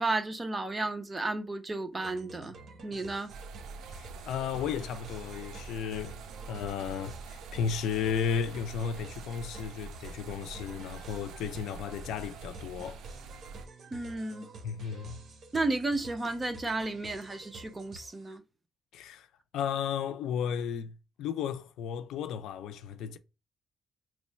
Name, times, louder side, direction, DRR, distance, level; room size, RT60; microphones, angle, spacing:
voice 1, 0.0-2.6 2.8-3.3 13.9-14.5 15.5-18.4, right 2 dB, 20° right, 0.7 m, -33 dB
sound 1, 2.0-18.3, right 3 dB, 60° right, 0.8 m, -49 dB
sound 2, 3.3-13.7, right 4 dB, 80° right, 0.3 m, -45 dB
voice 2, 3.8-6.2 6.5-13.0 14.6-15.3 18.9-19.3 19.5-23.2, left 7 dB, 85° left, 0.4 m, -34 dB
3.0 x 2.1 x 4.1 m
cardioid pair, 90°, 0 cm